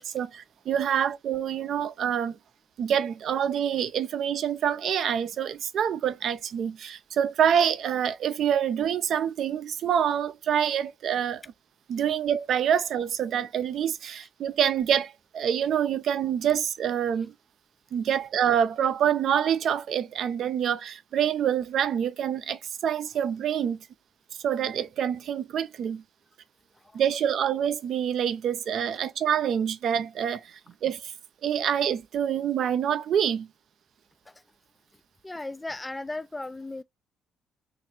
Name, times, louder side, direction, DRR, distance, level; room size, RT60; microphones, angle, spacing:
voice 1, 0.0-2.4 2.8-11.4 11.9-17.3 17.9-23.8 24.4-26.0 26.9-31.1 31.4-33.5, right 9 dB, 65° right, 0.4 m, -26 dB
voice 2, 35.2-36.8, left 2 dB, 15° left, 0.3 m, -36 dB
3.1 x 2.6 x 4.3 m
supercardioid pair, 55°, 0 cm